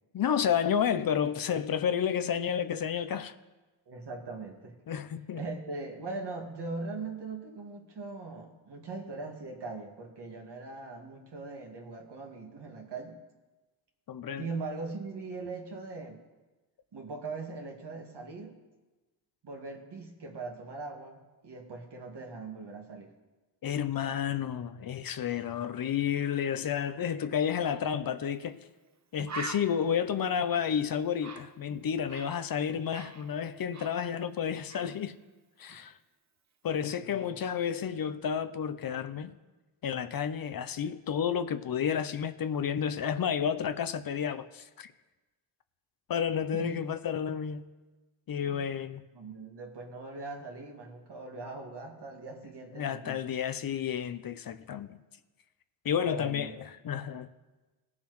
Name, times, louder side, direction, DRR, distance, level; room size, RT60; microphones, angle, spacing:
voice 1, 0.1-3.3 4.9-5.4 14.1-14.5 23.6-28.6 29.1-35.2 35.6-36.0 36.6-39.4 39.8-44.9 46.1-47.7 48.3-49.0 52.8-55.0 55.8-57.3, left 8 dB, 50° left, 0.6 m, -31 dB
voice 2, 3.9-4.8 5.3-13.2 14.4-16.2 16.9-18.6 19.4-23.1 37.0-37.3 46.5-46.8 48.5-48.6 49.1-53.2 56.0-56.5, right 3 dB, 60° right, 2.0 m, -40 dB
Bird, 28.4-28.6 28.9-29.0 29.3-32.4 32.7-34.4 34.7-35.0, right 4 dB, 35° right, 0.9 m, -44 dB
18.0 x 7.2 x 3.1 m
cardioid pair, 65°, 47 cm